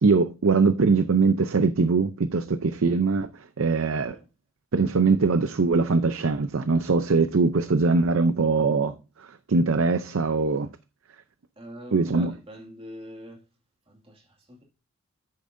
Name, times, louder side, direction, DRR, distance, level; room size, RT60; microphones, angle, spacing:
voice 1, 0.0-3.3 3.6-4.2 4.7-10.7 11.9-12.3, right 4 dB, 70° right, 0.6 m, -22 dB
voice 2, 3.9-4.3 11.6-13.5 13.9-14.6, left 1 dB, 25° right, 2.2 m, -43 dB
10.0 x 8.5 x 2.6 m
head